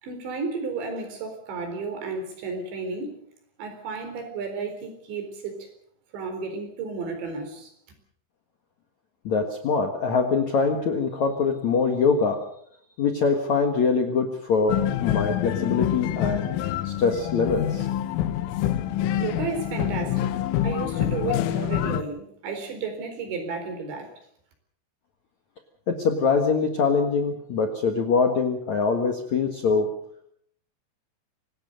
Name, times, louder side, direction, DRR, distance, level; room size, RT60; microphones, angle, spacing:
voice 1, 0.0-3.2 3.6-5.7 6.1-7.7 19.2-20.4 20.6-24.1, right 4 dB, 65° right, 7 dB, 6.3 m, -32 dB
voice 2, 9.2-12.4 13.0-16.5 16.8-17.9 25.9-29.9, left 5 dB, 55° left, 4 dB, 2.1 m, -23 dB
sound 1, 14.7-22.0, left 12 dB, 85° left, 3.6 m, -26 dB
25.5 x 18.5 x 6.7 m, 0.66 s
omnidirectional pair, 5.6 m